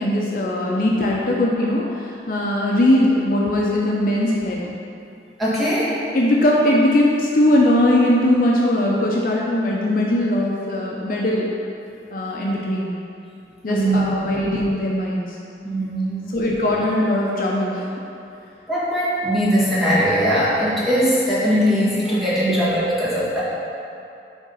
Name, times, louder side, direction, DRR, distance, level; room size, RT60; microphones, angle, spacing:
voice 1, 0.0-4.6 6.1-11.5 12.1-12.9 13.6-15.4 16.3-17.9, left 1 dB, 50° left, -3 dB, 0.6 m, -20 dB
voice 2, 5.4-5.9 13.7-14.4 15.6-16.4 17.5-17.6 18.7-23.4, equal, ahead, -10 dB, 1.5 m, -20 dB
7.0 x 3.7 x 5.5 m, 2.7 s
head